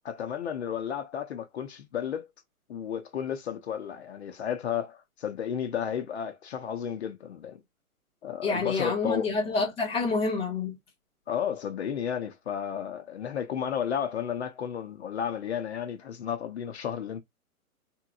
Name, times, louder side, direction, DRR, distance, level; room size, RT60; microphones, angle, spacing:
voice 1, 0.0-2.3 2.7-7.6 8.2-9.3 11.3-17.2, left 8 dB, 50° left, 0.8 m, -33 dB
voice 2, 8.4-10.7, left 4 dB, 5° left, 0.5 m, -28 dB
3.6 x 3.0 x 2.4 m
hypercardioid pair, 140°, 44 cm